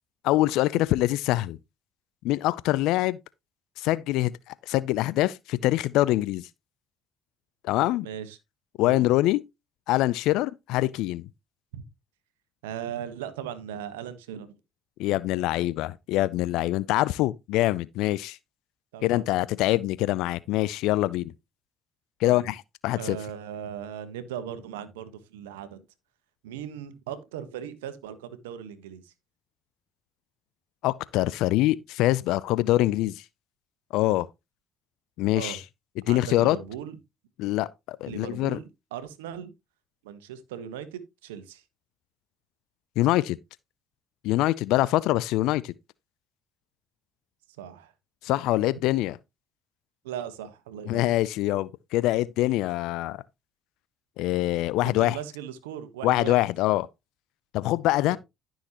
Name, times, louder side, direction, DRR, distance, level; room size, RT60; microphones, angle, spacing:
voice 1, 0.2-1.6 2.2-3.2 3.8-4.3 4.7-6.4 7.6-8.1 8.8-9.4 9.9-11.3 15.0-18.4 19.0-21.3 22.2-23.2 30.8-33.2 33.9-34.3 35.2-35.6 36.1-36.6 37.4-38.6 43.0-43.4 44.2-45.7 48.2-49.2 50.9-53.2 54.2-55.2 56.0-56.9 57.5-58.2, left 16 dB, 75° left, 0.4 m, -24 dB
voice 2, 8.0-8.4 8.8-9.1 11.7-11.8 12.6-14.5 18.9-19.2 22.2-22.5 22.9-25.8 26.4-29.1 35.3-35.6 36.1-37.0 38.1-39.5 40.0-41.6 47.6-47.9 50.0-51.1 54.8-56.4 58.0-58.2, right 9 dB, 90° right, 1.2 m, -38 dB
13.0 x 6.4 x 2.9 m
hypercardioid pair, 55°, 0 cm